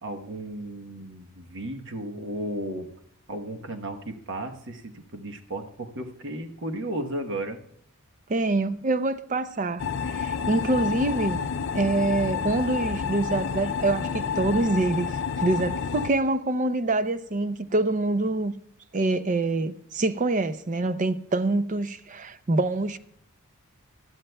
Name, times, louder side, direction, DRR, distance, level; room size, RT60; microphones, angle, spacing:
voice 1, 0.0-2.9 3.3-7.6, right 1 dB, 55° right, 1.1 m, -34 dB
voice 2, 8.3-11.4 11.7-18.5 18.9-23.0, right 2 dB, 35° right, 0.5 m, -25 dB
sound 1, 9.8-16.1, left 6 dB, 50° left, 0.4 m, -29 dB
20.0 x 12.5 x 2.2 m
head